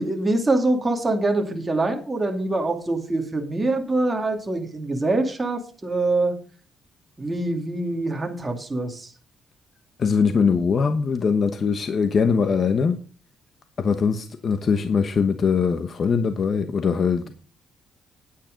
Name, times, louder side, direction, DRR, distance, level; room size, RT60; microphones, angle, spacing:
voice 1, 0.0-6.4 7.2-9.1, right 2 dB, 20° right, 3 dB, 2.4 m, -24 dB
voice 2, 10.0-13.0 13.8-17.3, left 5 dB, 45° left, 9 dB, 1.1 m, -21 dB
9.8 x 8.9 x 5.2 m, 0.38 s
cardioid pair, 100°, 0 cm